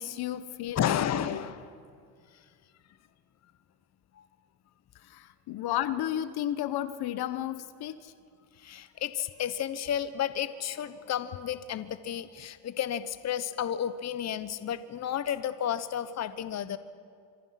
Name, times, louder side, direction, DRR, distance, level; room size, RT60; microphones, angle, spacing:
voice 1, 0.0-1.4 5.1-8.1, left 12 dB, 55° left, 13 dB, 1.1 m, -33 dB
voice 2, 0.7-1.7 4.1-4.3 8.6-16.8, left 9 dB, 35° left, 13 dB, 1.1 m, -32 dB
27.5 x 25.0 x 5.9 m, 2.2 s
supercardioid pair, 110°, 46 cm